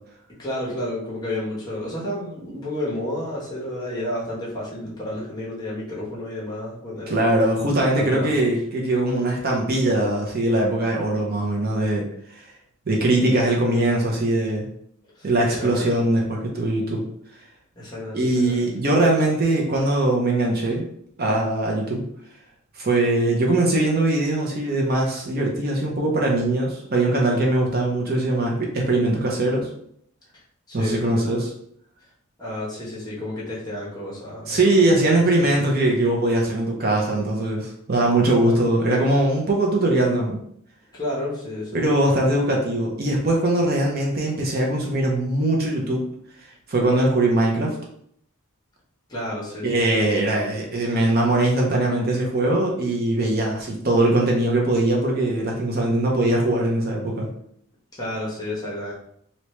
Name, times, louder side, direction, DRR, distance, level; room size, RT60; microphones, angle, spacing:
voice 1, 0.4-7.2 7.9-8.5 15.2-16.1 17.8-18.7 30.7-31.4 32.4-35.2 35.5-35.8 38.4-38.6 40.9-41.9 49.1-50.0 57.9-58.9, left 1 dB, 20° left, -6 dB, 1.1 m, -31 dB
voice 2, 7.1-12.4 12.9-14.7 15.2-17.0 18.1-20.8 21.2-22.0 22.7-29.7 30.7-31.5 34.5-40.4 41.7-46.1 46.7-47.8 49.6-57.3, right 1 dB, 45° right, -1 dB, 0.6 m, -21 dB
3.0 x 2.8 x 3.2 m, 0.68 s
head